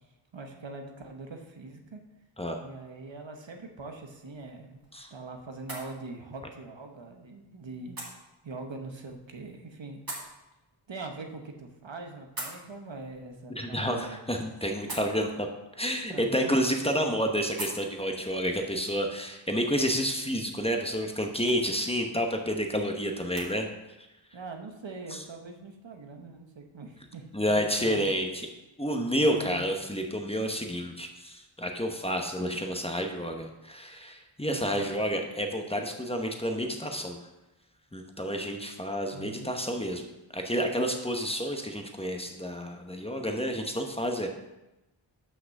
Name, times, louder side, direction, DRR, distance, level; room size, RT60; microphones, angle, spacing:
voice 1, 0.3-2.0 2.6-8.0 8.4-10.0 10.9-14.2 16.1-16.5 24.3-28.1 29.2-29.7 34.4-34.9 39.1-39.6, right 3 dB, 65° right, 4 dB, 1.1 m, -42 dB
sound 1, 4.0-23.5, right 1 dB, 45° right, 2.4 m, -48 dB
voice 2, 13.5-15.5 15.8-23.7 25.1-25.2 27.3-28.3 28.8-37.2 37.9-40.0 40.3-44.3, equal, 10° left, 3 dB, 1.0 m, -30 dB
6.0 x 5.9 x 6.4 m, 0.98 s
wide cardioid pair, 60°, 48 cm